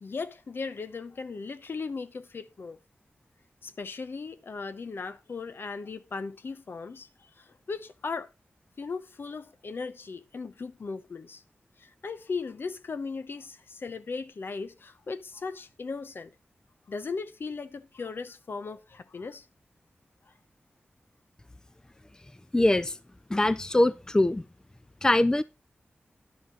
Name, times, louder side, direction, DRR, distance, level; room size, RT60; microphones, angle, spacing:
voice 1, 0.0-2.8 3.6-8.3 8.8-11.4 11.8-16.3 16.9-19.5, left 4 dB, 65° left, 0.8 m, -37 dB
voice 2, 22.5-23.0 23.3-24.4 25.0-25.4, left 1 dB, 15° left, 0.5 m, -23 dB
11.0 x 5.0 x 5.1 m
wide cardioid pair, 65°, 4 cm